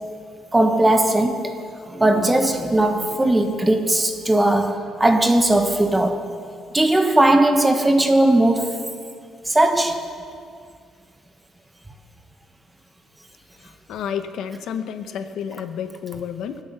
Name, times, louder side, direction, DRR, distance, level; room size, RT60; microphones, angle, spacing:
voice 1, 0.5-1.5 1.9-6.3 6.7-8.9 9.5-10.1, right 1 dB, 10° right, 1.3 m, -18 dB
voice 2, 13.6-16.6, left 8 dB, 70° left, 0.9 m, -31 dB
25.0 x 8.4 x 6.9 m
cardioid pair, 140°, 0 cm